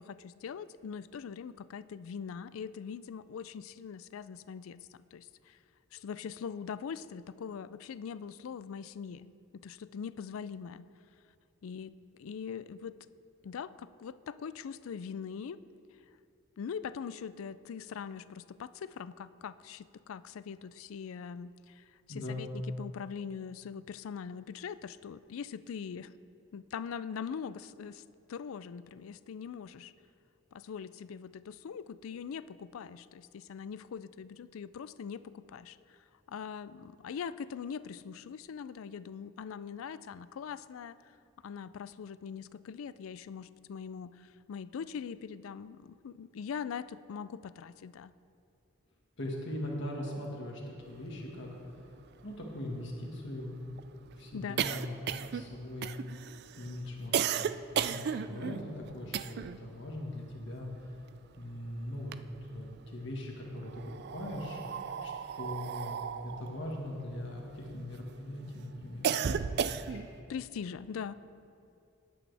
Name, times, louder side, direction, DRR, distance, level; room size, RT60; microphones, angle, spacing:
voice 1, 0.0-5.6 5.9-10.9 11.6-13.0 13.4-15.6 16.6-26.1 26.5-28.0 28.3-29.9 30.5-36.0 36.3-41.0 41.4-48.1 54.3-54.6 70.3-71.1, left 6 dB, 85° left, 16 dB, 0.4 m, -42 dB
voice 2, 22.1-22.5 49.2-52.0 52.2-53.5 54.2-55.9 56.6-61.1 61.4-62.1 62.4-70.1, left 1 dB, 60° left, -1 dB, 1.7 m, -41 dB
sound 1, 51.4-51.5 51.8-51.9 52.2-59.7 59.9-61.5 61.9-62.8 63.5-68.0 68.4-70.2, right 7 dB, 55° right, 0.3 m, -35 dB
19.0 x 8.6 x 3.4 m, 2.5 s
head